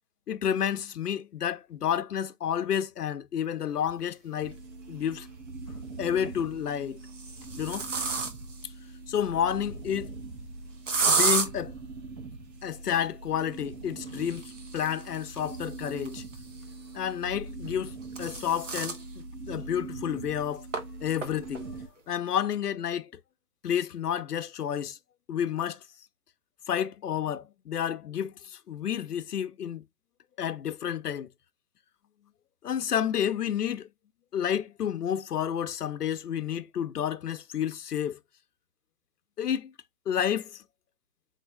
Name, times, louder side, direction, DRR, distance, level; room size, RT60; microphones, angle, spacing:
voice 1, 0.3-4.6 4.9-5.3 6.0-7.0 7.6-7.9 9.1-10.2 11.0-11.7 12.6-16.2 16.9-20.7 21.0-21.8 22.1-23.1 23.6-25.0 25.3-25.8 26.7-29.8 30.4-31.3 32.6-33.9 34.3-38.2 39.4-39.7 40.1-40.6, left 9 dB, 70° left, 0.7 m, -30 dB
sound 1, 4.4-21.9, right 3 dB, 85° right, 1.6 m, -42 dB
sound 2, 4.5-4.6 6.0-6.4 7.0-8.6 10.9-11.5 14.1-16.7 17.7-19.0 19.5-19.6 19.9-20.0 20.7-20.8 21.2-21.6, right 4 dB, 50° right, 0.9 m, -31 dB
4.0 x 3.7 x 3.4 m
hypercardioid pair, 170°, 49 cm